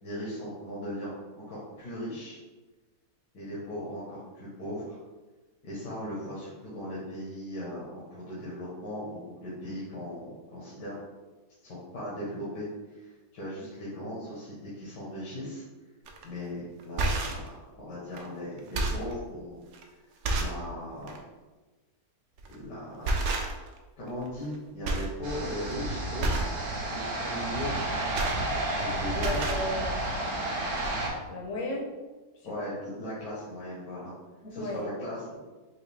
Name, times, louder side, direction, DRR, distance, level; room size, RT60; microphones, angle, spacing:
voice 1, 0.0-1.1 1.5-2.4 3.3-5.0 5.6-10.9 11.6-15.6 16.2-19.6 20.3-21.2 22.5-23.2 24.0-26.4 26.8-27.7 28.7-29.4 32.4-34.1 34.5-35.4, equal, 85° left, -8 dB, 1.7 m, -38 dB
sound 1, 16.1-16.2 16.8-17.5 18.1-18.3 18.6-19.1 19.7-19.8 20.2-20.6 21.0-21.2 22.4-22.6 23.0-23.8 24.1-24.6 24.8-25.2 25.5-25.7 26.2-26.6 27.8-28.9 29.1-29.7 30.4-30.5 30.8-30.9, right 2 dB, 75° right, 0.7 m, -30 dB
sound 2, 25.2-31.1, right 1 dB, 45° right, 0.8 m, -31 dB
voice 2, 29.2-30.0 31.3-31.9 32.4-32.7 34.4-34.9, left 1 dB, 60° left, 1 dB, 0.9 m, -34 dB
4.8 x 2.6 x 3.3 m, 1.2 s
omnidirectional pair, 1.8 m